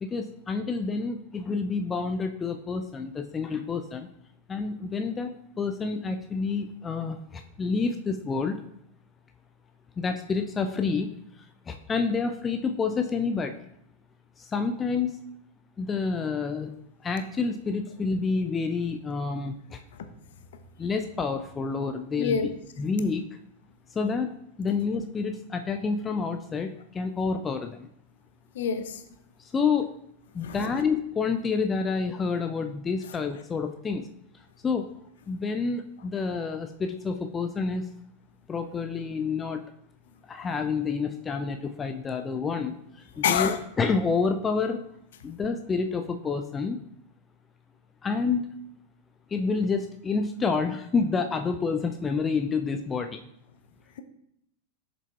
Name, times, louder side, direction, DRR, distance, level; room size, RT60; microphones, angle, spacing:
voice 1, 0.0-4.1 4.5-8.6 10.0-11.1 11.7-13.5 14.4-15.2 15.8-16.7 17.0-19.8 20.8-22.4 22.8-23.2 23.9-24.3 24.6-27.9 29.4-29.9 30.3-34.1 34.6-34.9 35.3-37.8 38.5-39.6 40.3-44.8 45.2-46.8 48.0-48.5 49.3-53.2, left 4 dB, 20° left, 7 dB, 0.4 m, -28 dB
voice 2, 22.2-22.5 28.5-29.0 30.4-30.7 43.2-43.6, left 7 dB, 60° left, 8 dB, 0.7 m, -26 dB
7.2 x 6.7 x 2.3 m, 0.75 s
figure-of-eight pair, 90°, 0 cm